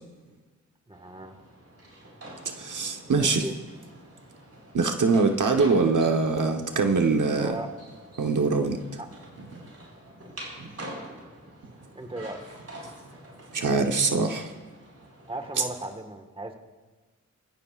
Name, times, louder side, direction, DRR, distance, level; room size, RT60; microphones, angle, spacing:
voice 1, 0.9-1.4 3.4-3.5 7.4-7.7 9.0-9.1 12.0-12.4 15.3-16.5, right 2 dB, 15° right, 5 dB, 1.6 m, -36 dB
sound 1, 0.9-15.8, right 1 dB, 50° right, 5.1 m, -46 dB
voice 2, 2.4-3.4 4.7-7.5 8.2-8.8 13.5-14.5, right 4 dB, 75° right, 4 dB, 1.2 m, -23 dB
23.5 x 15.5 x 2.5 m, 1.3 s
wide cardioid pair, 65°, 31 cm